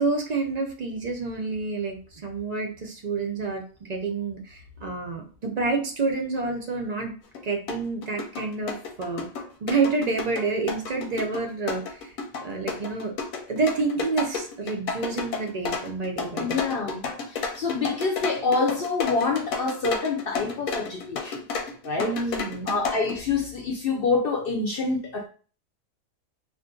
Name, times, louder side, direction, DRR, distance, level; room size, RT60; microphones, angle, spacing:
voice 1, 0.0-7.1 7.4-9.3 9.6-12.1 12.4-13.1 13.5-16.6 22.0-22.8, right 3 dB, 65° right, 0.4 m, -28 dB
sound 1, 7.3-7.4 7.7-23.2, left 5 dB, 90° left, 1.1 m, -31 dB
voice 2, 16.4-17.0 17.3-21.4 21.8-22.2 22.7-25.3, left 4 dB, 65° left, 0.6 m, -26 dB
2.5 x 2.5 x 3.7 m
omnidirectional pair, 1.4 m